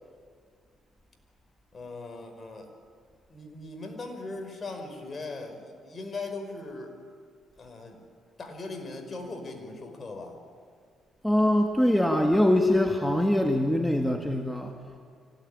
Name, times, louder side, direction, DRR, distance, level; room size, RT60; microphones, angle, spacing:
voice 1, 1.7-2.7 3.3-6.9 7.6-8.0 8.4-10.4, left 3 dB, 35° left, 4 dB, 5.2 m, -39 dB
voice 2, 11.2-14.7, left 1 dB, 5° left, 3 dB, 1.8 m, -23 dB
24.5 x 17.5 x 9.9 m, 2.1 s
cardioid pair, 90°, 0 cm